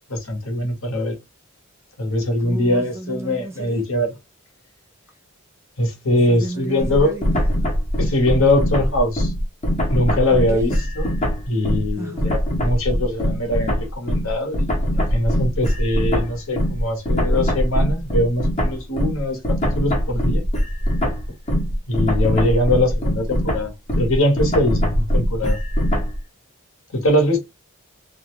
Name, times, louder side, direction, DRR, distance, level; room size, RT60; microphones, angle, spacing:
voice 1, 0.1-1.2 2.0-4.1 5.8-7.2 8.0-9.3 9.9-11.1 11.4-20.4 21.9-25.6 26.9-27.4, left 1 dB, 65° left, 0.9 m, -22 dB
voice 2, 2.4-3.9 6.3-7.7 10.3-10.8 12.0-12.4, right 1 dB, 10° right, 0.4 m, -33 dB
sound 1, 6.8-11.9 12.2-26.2, equal, 30° left, 0.7 m, -22 dB
2.4 x 2.0 x 2.9 m
head